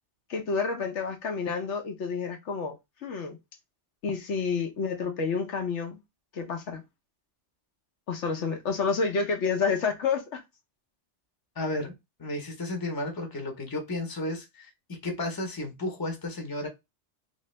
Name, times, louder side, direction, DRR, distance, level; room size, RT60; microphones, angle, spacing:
voice 1, 0.3-2.7 3.0-3.4 4.0-6.0 6.3-6.8 8.1-10.4, left 5 dB, 75° left, 1.1 m, -29 dB
voice 2, 11.6-11.9 12.2-16.7, left 1 dB, 20° left, 0.8 m, -33 dB
3.1 x 2.9 x 3.1 m
omnidirectional pair, 1.2 m